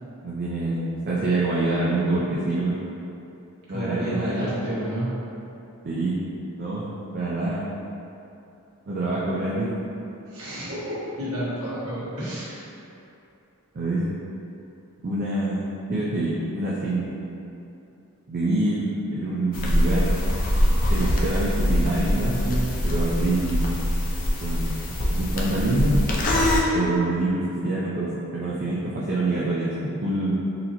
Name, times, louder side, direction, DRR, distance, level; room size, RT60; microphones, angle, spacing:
voice 1, 0.2-2.8 3.7-4.5 5.8-6.2 6.6-6.8 7.1-7.6 8.9-9.7 13.7-14.1 15.0-17.2 18.3-20.2 20.9-23.6 24.4-26.0 26.7-30.3, right 2 dB, 40° right, -7 dB, 0.4 m, -26 dB
voice 2, 3.7-5.1 10.3-12.6, equal, 80° right, -10 dB, 1.3 m, -30 dB
sound 1, 19.5-26.6, equal, 35° left, 0.4 m, -23 dB
4.0 x 2.8 x 2.7 m, 2.8 s
head